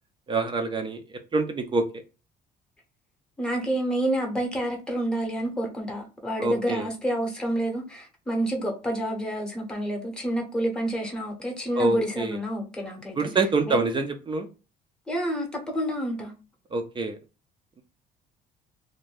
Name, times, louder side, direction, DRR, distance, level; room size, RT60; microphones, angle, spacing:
voice 1, 0.3-1.0 1.3-2.0 6.4-6.9 11.8-12.4 13.2-14.5 16.7-17.2, right 3 dB, 30° right, 0.4 m, -26 dB
voice 2, 3.4-13.3 13.7-13.9 15.1-16.3, right 1 dB, 5° left, 0.8 m, -29 dB
2.5 x 2.1 x 3.2 m
cardioid pair, 110°, 17 cm